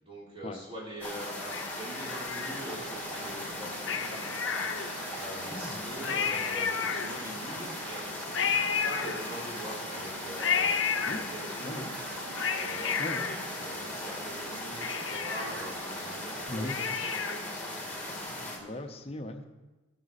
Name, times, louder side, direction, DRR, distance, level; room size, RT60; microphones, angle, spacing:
voice 1, 0.0-4.3 5.1-10.7 11.1-12.0 12.4-13.3 13.6-18.4, equal, 30° right, -5 dB, 3.5 m, -43 dB
sound 1, 1.0-18.6, left 1 dB, 10° left, 1.8 m, -38 dB
Cat, 1.5-3.0 3.8-5.2 5.7-5.8 6.0-7.5 8.3-9.7 10.4-11.7 12.1-14.1 14.5-14.6 14.8-17.6 17.9-18.0, left 7 dB, 75° left, 0.8 m, -32 dB
sound 2, 2.0-17.1, right 6 dB, 65° right, 0.4 m, -47 dB
voice 2, 5.5-6.4 11.0-11.2 11.6-11.9 13.0-13.3 16.5-16.8 18.2-19.5, left 1 dB, 30° left, 5 dB, 0.9 m, -39 dB
18.0 x 6.0 x 4.2 m, 1.1 s
head